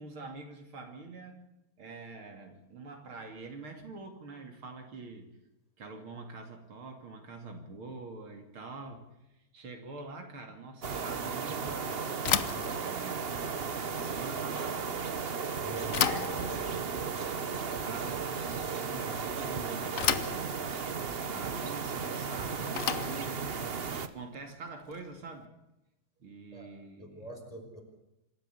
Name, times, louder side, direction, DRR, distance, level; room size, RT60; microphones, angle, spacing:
voice 1, 0.0-1.4 1.8-5.3 5.8-9.0 9.5-12.1 12.8-13.5 13.8-15.0 15.6-16.5 17.2-20.7 21.3-25.5 26.2-27.3, right 3 dB, 70° right, 4 dB, 3.5 m, -45 dB
sound 1, 10.8-24.1, right 5 dB, 40° right, 1.0 m, -35 dB
Bicycle / Thump thud, 12.2-25.3, left 8 dB, 50° left, 1.0 m, -36 dB
voice 2, 15.6-15.9 26.5-26.7 27.0-27.8, right 2 dB, 15° left, 2 dB, 5.2 m, -45 dB
26.5 x 13.5 x 8.4 m, 0.92 s
omnidirectional pair, 2.4 m